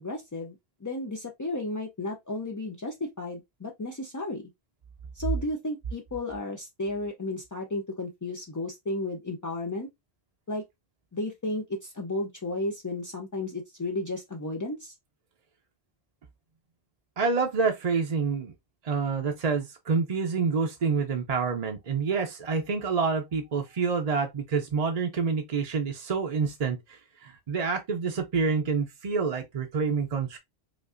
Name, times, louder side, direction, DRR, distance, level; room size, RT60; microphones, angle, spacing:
voice 1, 0.0-4.4 5.2-9.9 10.5-10.6 11.1-14.9, left 2 dB, 30° left, 0.3 m, -33 dB
voice 2, 17.2-18.5 18.8-30.4, right 5 dB, 45° right, 0.6 m, -27 dB
5.0 x 2.5 x 2.4 m
omnidirectional pair, 1.1 m